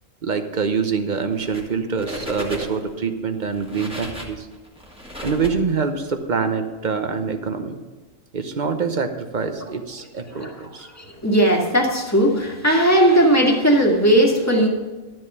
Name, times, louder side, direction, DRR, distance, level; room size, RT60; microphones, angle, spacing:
voice 1, 0.2-4.5 5.2-7.8 8.3-10.9, right 5 dB, 40° right, 7 dB, 0.9 m, -25 dB
sound 1, 1.3-1.7 2.0-2.9 3.5-6.1, equal, 5° right, 1.7 m, -34 dB
voice 2, 11.2-14.7, right 1 dB, 10° left, -1 dB, 1.8 m, -17 dB
12.0 x 7.8 x 5.5 m, 1.2 s
omnidirectional pair, 1.4 m